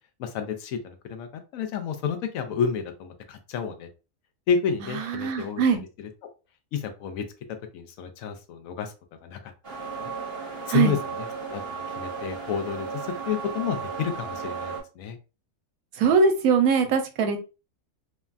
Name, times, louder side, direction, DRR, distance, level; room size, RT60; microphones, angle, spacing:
voice 1, 0.2-3.9 4.5-5.6 6.0-6.1 6.7-7.2 7.7-8.9 9.2-9.5 10.0-10.1 10.7-15.2, left 7 dB, 75° left, 7 dB, 1.0 m, -30 dB
voice 2, 4.9-5.8 10.7-10.9 16.0-17.4, right 5 dB, 85° right, 6 dB, 1.0 m, -21 dB
sound 1, 9.6-14.8, right 5 dB, 25° right, 0.7 m, -35 dB
3.2 x 2.2 x 2.4 m, 0.31 s
omnidirectional pair, 1.5 m